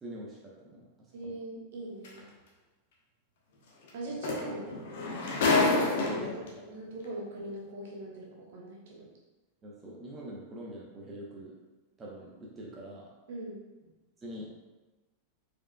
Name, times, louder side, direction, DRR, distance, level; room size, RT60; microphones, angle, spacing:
voice 1, 0.0-0.8 1.2-1.3 6.2-6.6 9.6-11.6 12.0-13.1 14.2-14.5, equal, 20° right, -4 dB, 0.9 m, -44 dB
voice 2, 1.1-2.2 3.9-4.8 5.7-6.3 6.7-9.0 13.3-13.6, right 2 dB, 55° right, -3 dB, 1.2 m, -40 dB
sound 1, 2.0-2.2 3.9-4.0 4.2-6.5 7.4-7.5, left 3 dB, 55° left, 0.9 m, -27 dB
4.8 x 4.6 x 2.2 m, 1.2 s
figure-of-eight pair, 90°, 0 cm